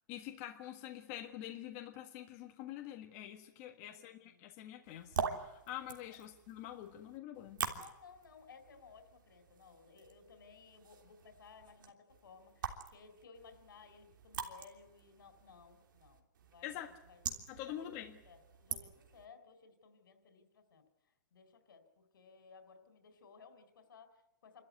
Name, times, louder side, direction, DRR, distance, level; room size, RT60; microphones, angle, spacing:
voice 1, 0.1-7.6 16.6-16.9 17.5-18.2, left 12 dB, 30° left, 3 dB, 1.6 m, -46 dB
voice 2, 3.5-4.4 6.1-6.2 7.7-17.2 17.7-20.8 21.3-24.7, left 5 dB, 85° left, 8 dB, 4.2 m, -59 dB
sound 1, 4.8-19.2, right 7 dB, 70° right, 3.2 m, -45 dB
28.5 x 13.5 x 9.6 m, 0.92 s
hypercardioid pair, 165°, 11 cm